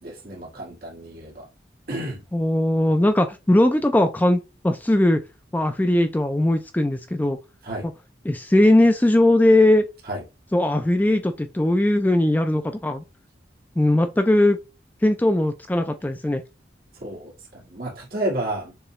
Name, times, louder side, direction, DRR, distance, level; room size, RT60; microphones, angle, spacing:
voice 1, 0.0-1.5 1.9-2.2 7.6-7.9 10.1-10.2 17.0-18.8, right 1 dB, 55° right, 1.8 m, -31 dB
voice 2, 2.3-5.2 5.5-7.4 8.3-9.8 10.5-13.0 13.8-14.6 15.0-16.4, left 1 dB, 10° left, 0.3 m, -19 dB
6.7 x 2.3 x 3.1 m
head